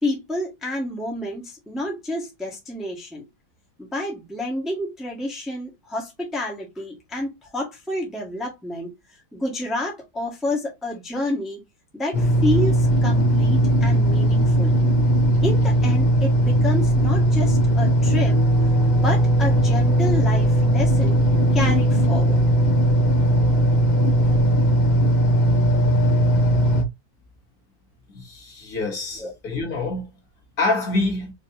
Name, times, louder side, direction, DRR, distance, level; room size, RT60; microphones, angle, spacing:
voice 1, 0.0-3.2 3.8-8.9 9.3-11.6 11.9-14.8 15.4-18.4 18.9-21.2 21.5-22.4 24.2-24.3 29.2-29.3, left 1 dB, ahead, 1.2 m, -29 dB
sound 1, 12.1-26.8, equal, 35° left, 0.7 m, -18 dB
voice 2, 28.1-30.1 30.6-31.3, left 2 dB, 50° left, 1.9 m, -26 dB
5.0 x 3.2 x 2.6 m
omnidirectional pair, 2.1 m